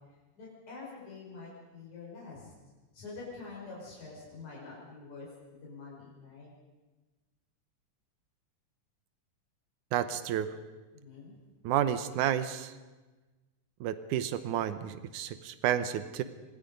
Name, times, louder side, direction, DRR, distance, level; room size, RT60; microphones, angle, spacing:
voice 1, 0.3-2.5 2.9-5.3 5.5-6.5 10.9-11.4, left 4 dB, 75° left, -5 dB, 7.0 m, -46 dB
voice 2, 9.9-10.5 11.6-12.7 13.8-16.2, right 10 dB, 90° right, 12 dB, 2.4 m, -31 dB
26.5 x 20.5 x 5.3 m, 1.2 s
omnidirectional pair, 3.4 m